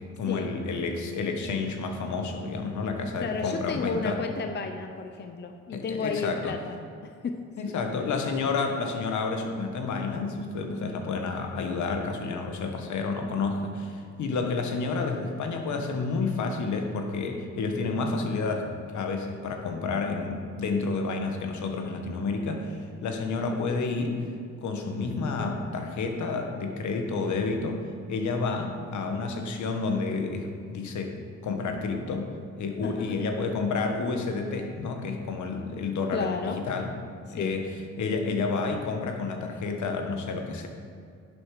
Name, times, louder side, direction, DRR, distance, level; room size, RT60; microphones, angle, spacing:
voice 1, 0.0-4.2 5.7-6.6 7.6-24.2 24.6-31.1 31.4-32.3 32.6-36.9 37.3-40.7, left 4 dB, 70° left, 4 dB, 1.4 m, -30 dB
voice 2, 3.2-6.7 7.2-7.4 7.6-7.7 32.8-33.2 36.1-36.6 37.3-37.5, left 4 dB, 35° left, 5 dB, 0.7 m, -32 dB
11.0 x 7.4 x 4.9 m, 2.2 s
cardioid pair, 90°, 30 cm